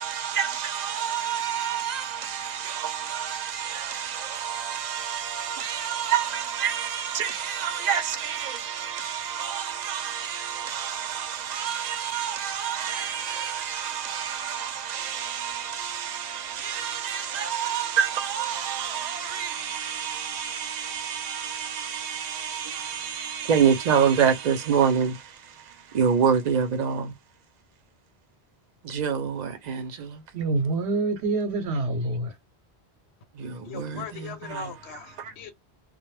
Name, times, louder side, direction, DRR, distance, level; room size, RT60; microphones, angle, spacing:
voice 1, 0.0-25.2 25.9-27.1 28.8-30.2 33.4-34.7 35.2-35.3, right 7 dB, 50° right, 0.6 m, -28 dB
voice 2, 30.3-32.4, right 2 dB, 90° right, 1.0 m, -26 dB
voice 3, 33.7-35.5, left 6 dB, 85° left, 0.9 m, -39 dB
2.2 x 2.0 x 3.0 m
omnidirectional pair, 1.1 m